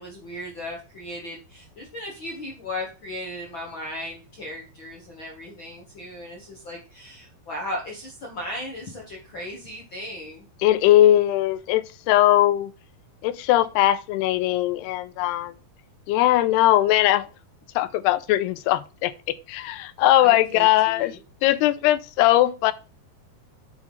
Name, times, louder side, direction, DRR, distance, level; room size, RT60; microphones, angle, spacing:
voice 1, 0.0-10.4 20.2-21.2, left 1 dB, 60° left, 1.2 m, -36 dB
voice 2, 10.6-12.7 13.2-15.5 16.1-17.3 17.8-21.2 21.4-22.7, left 14 dB, 90° left, 2.7 m, -20 dB
9.3 x 6.3 x 3.2 m
omnidirectional pair, 4.6 m